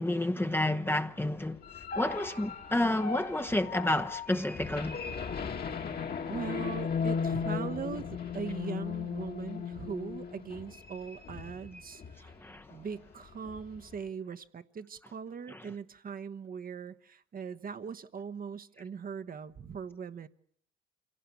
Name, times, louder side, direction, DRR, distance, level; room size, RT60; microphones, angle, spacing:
voice 1, 0.0-1.6 1.9-5.0 12.4-12.6 15.5-15.6, left 1 dB, 10° left, 0.9 m, -30 dB
sound 1, 1.4-12.4 12.7-12.9 13.2-14.0, left 6 dB, 50° left, 2.1 m, -37 dB
voice 2, 6.3-12.3 12.7-20.3, right 6 dB, 45° right, 1.2 m, -40 dB
25.5 x 17.5 x 8.4 m
cardioid pair, 90°, 20 cm